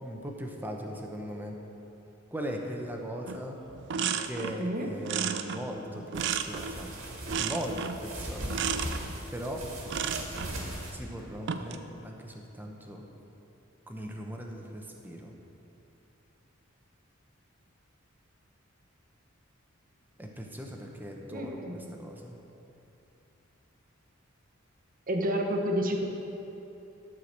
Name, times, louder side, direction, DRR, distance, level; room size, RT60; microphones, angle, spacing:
voice 1, 0.0-1.6 2.3-3.6 4.2-6.9 7.4-8.6 9.3-9.7 10.9-13.0 13.9-15.3 20.2-22.4, equal, 10° right, 1 dB, 0.8 m, -39 dB
sound 1, 3.3-3.4 3.7-4.6 5.0-6.9 7.3-8.0 8.5-9.0 9.9-10.6 11.3-11.8, right 7 dB, 60° right, 0.4 m, -33 dB
voice 2, 4.5-4.9 21.3-21.9 25.1-26.1, equal, 45° right, 2 dB, 1.0 m, -30 dB
sound 2, 6.1-10.9, right 1 dB, 80° right, 1.9 m, -39 dB
11.5 x 4.7 x 6.6 m, 2.9 s
head